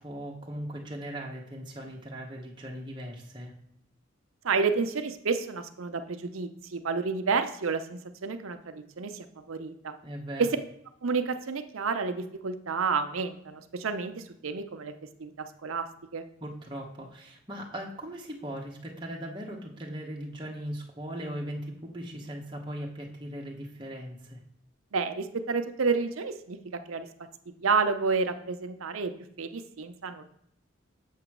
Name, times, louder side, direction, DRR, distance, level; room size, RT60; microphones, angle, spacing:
voice 1, 0.0-3.5 10.0-10.4 16.4-24.4, equal, 20° right, -1 dB, 1.0 m, -39 dB
voice 2, 4.4-9.9 10.4-10.5 11.0-14.9 15.2-15.9 16.1-16.2 24.9-27.1 27.6-29.1 29.4-30.2, right 4 dB, 80° right, 8 dB, 0.6 m, -30 dB
7.4 x 2.9 x 6.0 m, 0.73 s
head